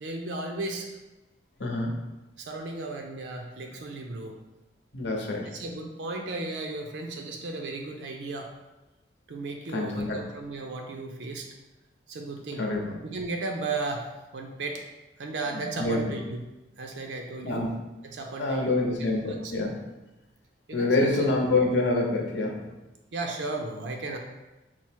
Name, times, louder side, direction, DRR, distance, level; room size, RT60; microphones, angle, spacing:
voice 1, 0.0-0.9 2.4-4.4 5.4-8.5 9.3-11.5 12.1-12.7 13.0-14.1 14.3-14.8 15.2-16.4 16.8-17.7 18.0-18.9 19.3-19.5 20.7-21.5 23.1-24.2, right 3 dB, 75° right, 2 dB, 0.5 m, -35 dB
voice 2, 1.6-1.9 4.9-5.5 9.7-10.2 12.6-12.9 15.7-16.2 17.4-17.7 18.4-19.8 20.7-22.6, left 2 dB, 75° left, 0 dB, 0.8 m, -26 dB
4.4 x 2.0 x 4.4 m, 1.0 s
head